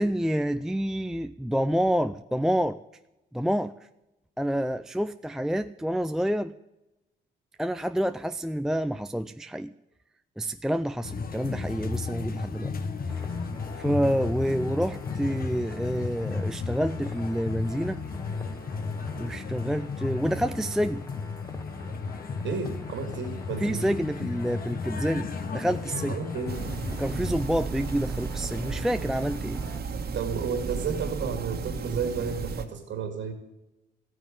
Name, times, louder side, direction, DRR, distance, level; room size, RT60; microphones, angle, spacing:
voice 1, 0.0-2.8 3.3-3.8 4.4-6.5 7.6-9.7 10.4-12.7 13.8-18.0 19.2-21.0 23.6-26.1 27.0-29.6, equal, ahead, 10 dB, 0.4 m, -28 dB
sound 1, 11.0-27.4, left 4 dB, 50° left, 1.6 m, -34 dB
sound 2, 13.1-29.8, left 3 dB, 15° left, 1.6 m, -49 dB
voice 2, 22.4-23.9 26.0-26.6 30.1-33.3, right 6 dB, 75° right, 5 dB, 2.5 m, -32 dB
sound 3, 26.5-32.6, right 4 dB, 55° right, 1.7 m, -33 dB
14.5 x 9.5 x 7.6 m, 0.96 s
cardioid pair, 90°, 20 cm